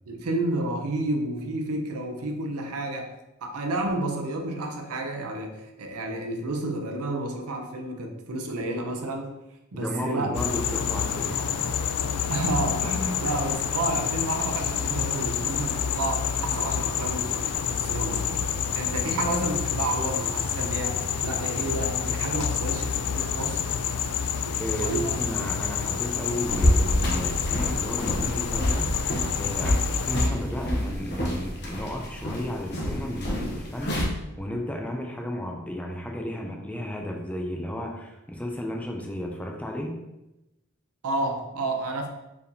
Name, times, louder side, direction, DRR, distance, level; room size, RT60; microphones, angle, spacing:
voice 1, 0.1-3.1 3.4-9.3 9.7-10.3 12.3-18.5 18.7-23.6 24.8-25.2 41.0-42.1, right 2 dB, 85° right, 3 dB, 0.6 m, -30 dB
voice 2, 9.7-11.7 19.1-19.3 24.6-28.9 29.4-40.0, left 1 dB, 5° left, 1 dB, 0.4 m, -33 dB
sound 1, 10.3-30.3, left 7 dB, 85° left, 0.3 m, -28 dB
sound 2, 26.5-34.0, left 1 dB, 50° left, 0.9 m, -27 dB
4.4 x 3.4 x 2.8 m, 0.95 s
head